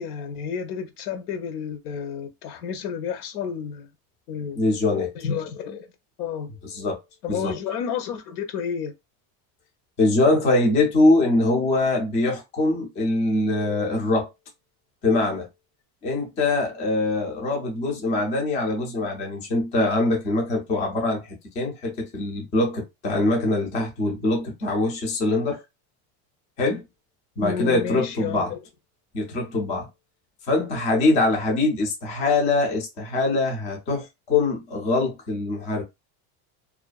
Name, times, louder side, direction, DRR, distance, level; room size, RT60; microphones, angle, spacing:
voice 1, 0.0-3.9 4.3-4.6 5.2-5.9 6.2-6.5 7.2-8.9 27.4-28.6, left 7 dB, 75° left, 0.8 m, -31 dB
voice 2, 4.6-5.1 6.6-7.0 7.3-7.6 10.0-14.3 15.0-15.5 16.0-25.6 26.6-26.8 27.4-28.5 29.1-29.9 30.4-35.8, left 2 dB, 15° left, 0.3 m, -23 dB
2.4 x 2.3 x 2.3 m
supercardioid pair, 160°, 45 cm